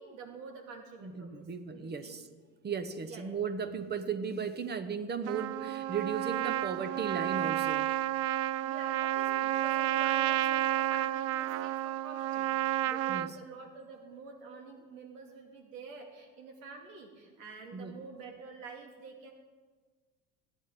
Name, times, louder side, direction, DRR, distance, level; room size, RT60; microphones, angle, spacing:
voice 1, 0.0-2.1 3.0-3.4 8.6-19.3, right 4 dB, 90° right, 2 dB, 2.6 m, -48 dB
voice 2, 1.0-2.2 2.6-7.9 13.1-13.3 17.7-17.9, right 6 dB, 25° right, 11 dB, 1.1 m, -36 dB
Trumpet, 5.3-13.3, right 15 dB, 40° right, 0.4 m, -31 dB
17.5 x 10.0 x 3.8 m, 1.4 s
supercardioid pair, 95°, 39 cm